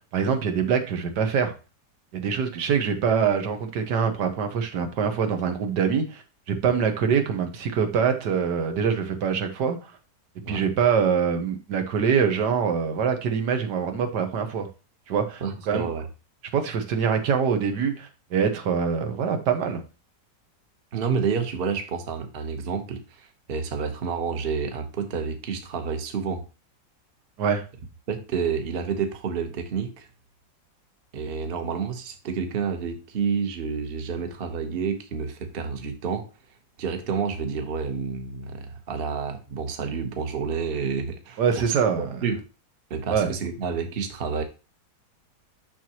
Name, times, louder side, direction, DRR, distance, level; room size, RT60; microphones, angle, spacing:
voice 1, 0.0-1.5 2.1-9.9 10.5-14.7 15.1-15.9 16.5-19.8 27.4-27.6 41.4-42.2 43.1-43.3, right 6 dB, 85° right, 1.6 m, -24 dB
voice 2, 15.4-16.1 20.9-26.4 28.1-30.1 31.1-36.3 36.8-42.4 42.9-44.4, right 6 dB, 40° right, 1.1 m, -29 dB
7.2 x 6.0 x 2.9 m
omnidirectional pair, 1.8 m